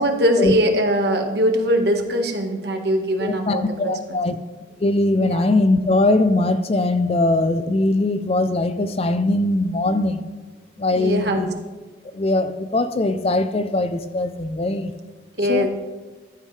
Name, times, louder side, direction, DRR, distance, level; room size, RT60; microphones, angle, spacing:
voice 1, 0.0-4.2 5.3-5.5 11.0-11.4 15.4-15.7, equal, 55° right, 3 dB, 1.6 m, -21 dB
voice 2, 3.2-4.4 4.8-10.2 10.8-11.5 12.1-14.9 15.5-15.7, left 2 dB, 30° left, 11 dB, 0.5 m, -21 dB
15.5 x 12.0 x 3.3 m, 1.3 s
head